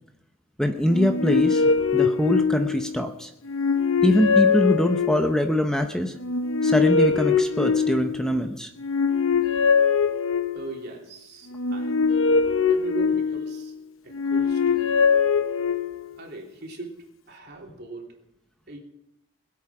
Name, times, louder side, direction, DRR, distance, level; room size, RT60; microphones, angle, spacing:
voice 1, 0.6-1.6 1.9-3.3 4.0-6.1 6.6-8.7, equal, 5° left, 5 dB, 0.8 m, -23 dB
sound 1, 0.9-3.0 3.5-5.5 6.2-8.3 8.8-10.8 11.5-13.6 14.1-16.1, left 5 dB, 80° left, 0.8 m, -22 dB
voice 2, 10.5-12.0 12.7-13.7 14.0-14.9 16.2-18.2 18.7-18.8, right 2 dB, 55° right, 0 dB, 3.3 m, -39 dB
21.0 x 8.6 x 6.0 m, 0.86 s
head